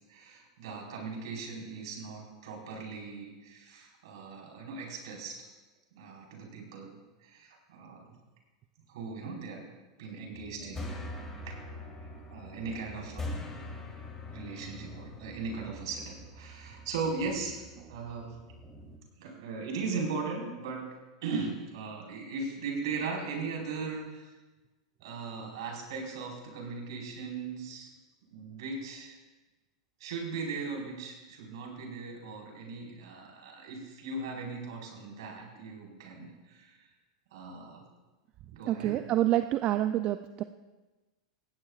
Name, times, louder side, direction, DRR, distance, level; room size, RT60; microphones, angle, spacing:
voice 1, 0.1-5.4 5.9-8.1 8.9-9.6 10.0-11.1 11.4-11.6 12.0-13.3 14.3-17.6 17.9-18.3 19.2-20.8 21.2-24.3 25.0-27.9 28.3-29.2 30.0-36.9 37.3-37.8 38.5-39.0, right 4 dB, 70° right, -1 dB, 4.9 m, -38 dB
sound 1, 10.3-19.0, left 1 dB, 15° left, 3.5 m, -43 dB
voice 2, 38.7-40.4, right 13 dB, 40° right, 10 dB, 0.5 m, -27 dB
19.5 x 16.0 x 2.5 m, 1.2 s
hypercardioid pair, 100°, 3 cm